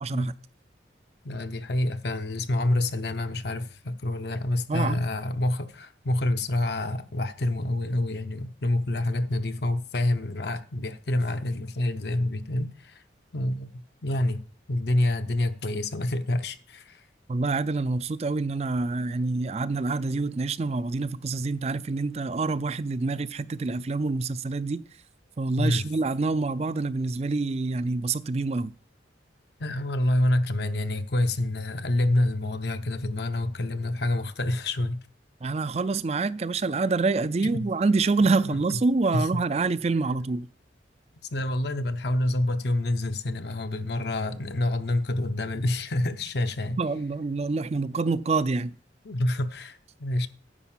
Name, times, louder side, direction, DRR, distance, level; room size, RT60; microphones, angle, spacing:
voice 1, 0.0-0.3 4.7-5.0 17.3-24.8 25.4-28.7 35.4-40.5 46.8-48.7, right 3 dB, 35° right, 0.4 m, -26 dB
voice 2, 1.2-13.0 13.3-17.0 25.6-25.8 29.6-35.0 37.4-37.7 38.2-38.8 39.1-39.4 41.3-46.8 49.0-50.3, left 1 dB, 60° left, 0.7 m, -27 dB
10.0 x 4.9 x 7.3 m
head